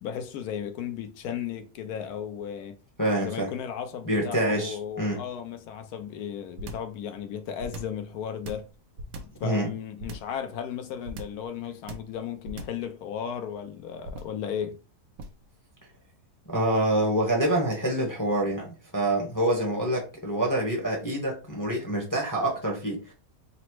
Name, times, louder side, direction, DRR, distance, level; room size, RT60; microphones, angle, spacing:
voice 1, 0.0-2.8 3.2-8.7 9.4-14.8, left 8 dB, 70° left, 1.0 m, -35 dB
voice 2, 3.0-3.5 4.1-5.2 9.4-9.7 16.5-23.1, right 1 dB, 15° left, 0.7 m, -26 dB
sound 1, 6.6-7.0 7.6-8.0 8.4-9.4 10.0-10.4 11.1-11.5 11.9-12.2 12.5-12.9 14.0-14.4 15.2-15.5, right 2 dB, 80° right, 1.4 m, -39 dB
4.0 x 2.1 x 4.5 m
omnidirectional pair, 1.9 m